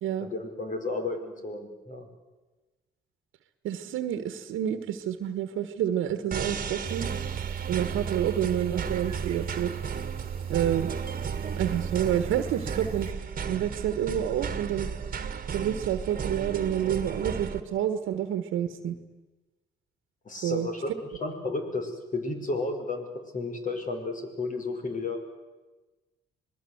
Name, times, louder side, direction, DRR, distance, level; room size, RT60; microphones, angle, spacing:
voice 1, 0.2-2.1 20.3-23.1 23.3-25.2, left 3 dB, 40° left, 5 dB, 5.2 m, -33 dB
voice 2, 3.6-7.1 7.7-9.7 10.5-10.9 11.5-13.1 13.5-14.9 15.5-18.9 20.4-20.7, right 10 dB, 85° right, 10 dB, 1.5 m, -28 dB
sound 1, 6.3-17.6, right 6 dB, 45° right, 1.8 m, -34 dB
sound 2, 6.9-13.1, right 8 dB, 30° right, 2.2 m, -36 dB
26.0 x 19.5 x 8.0 m, 1.2 s
cardioid pair, 90°, 20 cm